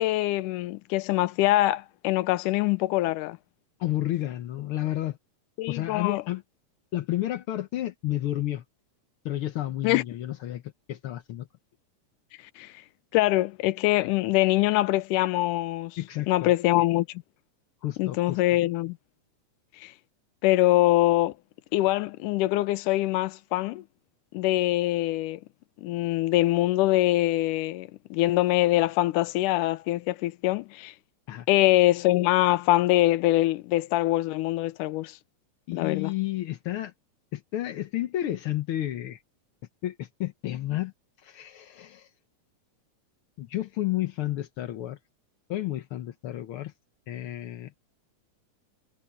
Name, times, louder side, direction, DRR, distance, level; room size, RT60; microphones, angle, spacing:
voice 1, 0.0-3.4 5.6-6.2 9.8-10.0 12.6-12.7 13.1-16.0 16.3-17.2 18.0-19.0 19.8-19.9 20.4-21.3 21.7-23.8 24.3-25.4 25.8-30.9 31.5-35.2 35.7-36.1, left 16 dB, 90° left, 2.2 m, -24 dB
voice 2, 3.8-5.2 5.7-6.4 6.9-8.6 9.2-11.5 16.0-16.5 17.8-18.4 31.3-31.5 35.7-36.9 37.3-39.2 39.8-40.9 41.2-42.1 43.4-45.0 45.5-46.7 47.1-47.7, left 14 dB, 70° left, 1.3 m, -31 dB
omnidirectional pair, 3.6 m